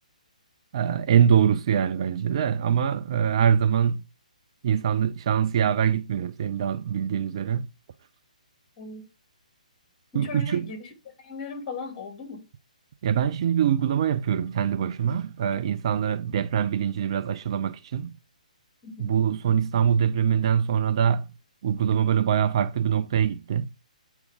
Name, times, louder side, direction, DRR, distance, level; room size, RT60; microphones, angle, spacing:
voice 1, 0.7-4.0 4.6-7.7 10.1-10.7 13.0-18.2 19.0-21.3 21.6-23.7, right 8 dB, 40° right, 0.5 m, -24 dB
voice 2, 10.1-10.9 11.2-12.4 18.8-19.1, left 4 dB, 25° left, 2.6 m, -37 dB
8.2 x 4.5 x 5.1 m
figure-of-eight pair, 130°, 4 cm